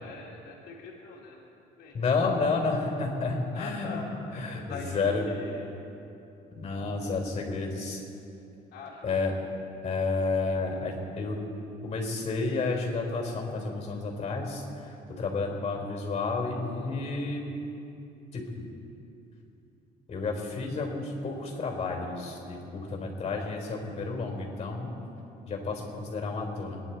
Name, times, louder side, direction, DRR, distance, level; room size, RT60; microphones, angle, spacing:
voice 1, 0.0-1.4 1.8-1.9 3.5-5.7 8.7-9.2, left 4 dB, 75° left, -4 dB, 2.7 m, -42 dB
voice 2, 1.9-4.0 4.3-5.3 6.5-8.0 9.0-9.3 9.8-11.4 11.8-17.4 18.3-18.6 20.1-24.9 25.5-26.8, left 3 dB, 40° left, 1 dB, 4.2 m, -31 dB
26.5 x 10.5 x 4.7 m, 2.8 s
cardioid pair, 110°, 17 cm